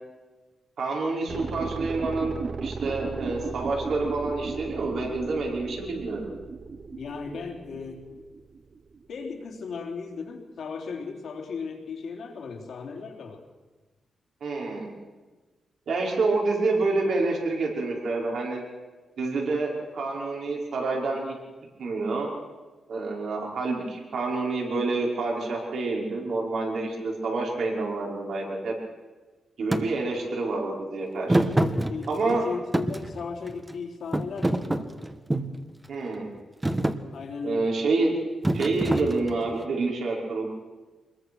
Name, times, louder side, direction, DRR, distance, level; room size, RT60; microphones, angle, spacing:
voice 1, 0.8-6.3 14.4-14.9 15.9-18.6 19.2-21.3 21.8-22.3 22.9-28.7 29.6-31.5 32.1-32.5 35.9-36.3 37.4-38.1 38.5-40.5, right 3 dB, 75° right, -1 dB, 5.5 m, -28 dB
sound 1, 1.3-9.1 9.4-9.5, right 4 dB, 45° right, 1.0 m, -36 dB
voice 2, 6.9-8.2 9.1-13.4 31.2-35.0 37.1-37.8, left 5 dB, 75° left, 1 dB, 3.8 m, -36 dB
Thump thud, 29.7-29.9 31.3-32.4 32.7-33.7 34.1-35.6 36.1-36.4 36.6-37.0 38.4-39.5, right 1 dB, 15° right, 1.4 m, -25 dB
25.0 x 21.5 x 6.4 m, 1.3 s
cardioid pair, 95°, 0 cm